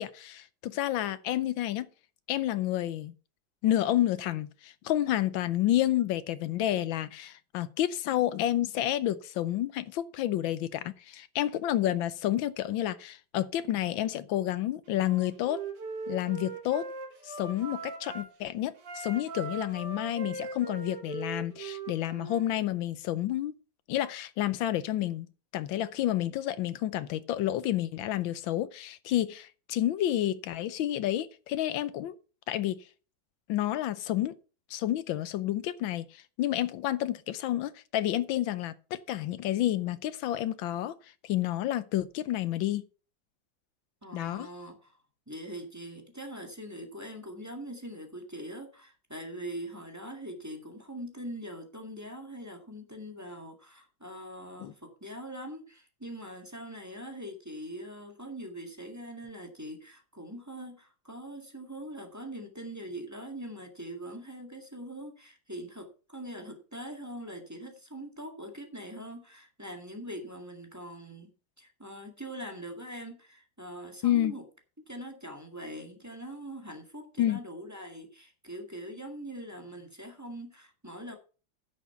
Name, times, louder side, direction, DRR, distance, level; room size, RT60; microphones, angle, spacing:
voice 1, 0.0-1.9 2.3-3.1 3.6-15.6 16.1-16.9 17.2-23.5 23.9-25.3 25.5-32.1 32.5-32.8 33.5-34.3 34.7-41.0 41.2-42.8 44.1-44.5 54.6-54.7 74.0-74.3 77.2-77.4, left 13 dB, 90° left, 1.5 m, -30 dB
Wind instrument woodwind instrument, 14.9-18.3 18.8-22.5, right 4 dB, 65° right, 2.6 m, -40 dB
voice 2, 44.0-45.0 45.3-71.3 71.6-74.4 74.9-81.2, right 1 dB, 10° right, 1.7 m, -42 dB
10.5 x 6.4 x 5.7 m
omnidirectional pair, 2.1 m